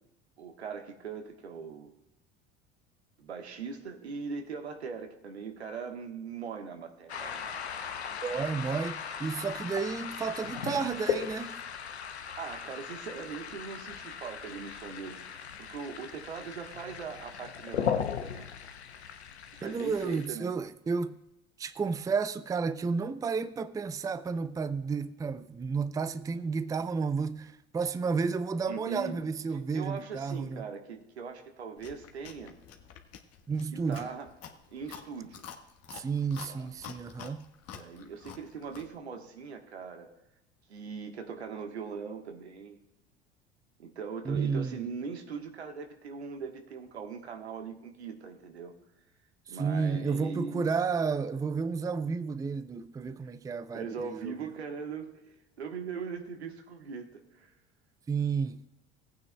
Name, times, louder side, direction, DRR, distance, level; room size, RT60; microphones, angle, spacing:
voice 1, 0.4-1.9 3.2-7.4 12.4-18.5 19.5-20.5 28.7-29.2 29.7-32.6 33.7-34.3 34.7-35.4 36.5-36.7 37.7-40.1 40.7-42.8 43.8-48.7 49.5-50.7 53.7-57.5, right 5 dB, 85° right, 1.4 m, -40 dB
sound 1, 7.1-20.3, left 8 dB, 85° left, 0.8 m, -37 dB
voice 2, 8.2-11.6 19.6-21.2 21.6-30.6 33.5-34.1 35.9-37.5 44.3-44.8 49.5-54.3 58.1-58.6, right 5 dB, 10° right, 0.4 m, -32 dB
Chewing mastication, 31.8-39.0, left 8 dB, 50° left, 1.4 m, -49 dB
18.0 x 9.1 x 2.3 m
hypercardioid pair, 70°, 32 cm